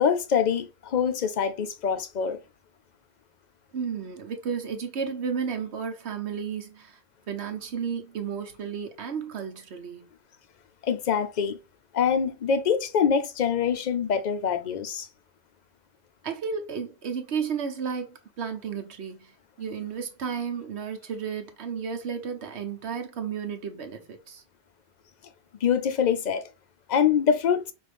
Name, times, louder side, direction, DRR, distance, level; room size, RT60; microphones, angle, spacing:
voice 1, 0.0-2.4 10.8-11.6 11.9-15.1 25.6-26.4 26.9-27.6, left 7 dB, 50° left, 0.6 m, -24 dB
voice 2, 3.7-7.0 7.3-10.1 16.2-24.4, right 6 dB, 75° right, 1.1 m, -33 dB
5.4 x 2.6 x 3.3 m
omnidirectional pair, 1.1 m